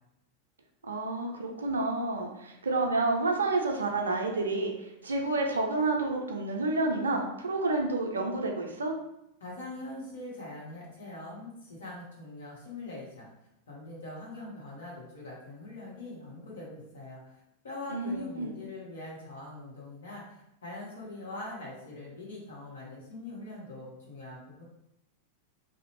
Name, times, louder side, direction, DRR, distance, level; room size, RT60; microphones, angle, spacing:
voice 1, 0.8-8.9 17.9-18.5, right 2 dB, 70° right, 2 dB, 0.4 m, -29 dB
voice 2, 9.4-13.3 13.7-24.6, left 2 dB, 65° left, -4 dB, 1.0 m, -43 dB
2.6 x 2.0 x 2.9 m, 0.83 s
figure-of-eight pair, 90°, 0 cm